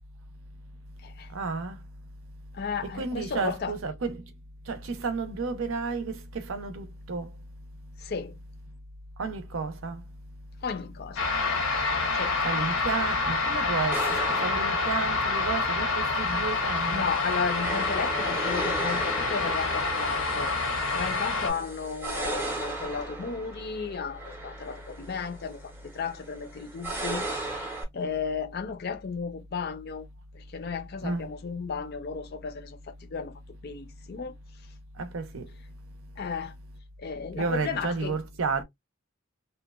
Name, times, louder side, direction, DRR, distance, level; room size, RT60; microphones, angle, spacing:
voice 1, 1.3-1.8 2.8-4.2 4.7-7.3 9.2-10.0 12.4-17.0 31.0-31.3 35.0-35.5 37.3-38.6, right 4 dB, 75° right, 0.6 m, -32 dB
voice 2, 2.5-3.7 8.0-8.4 10.6-11.2 12.1-12.4 12.7-13.0 15.1-15.2 16.7-20.5 20.9-25.6 25.9-30.1 30.3-33.3 33.6-34.3 36.2-36.5 37.0-38.2, left 5 dB, 50° left, 0.4 m, -34 dB
sound 1, 11.2-21.5, left 3 dB, 90° left, 0.8 m, -27 dB
sound 2, 13.9-27.8, right 2 dB, 10° right, 0.5 m, -37 dB
2.8 x 2.1 x 2.2 m
head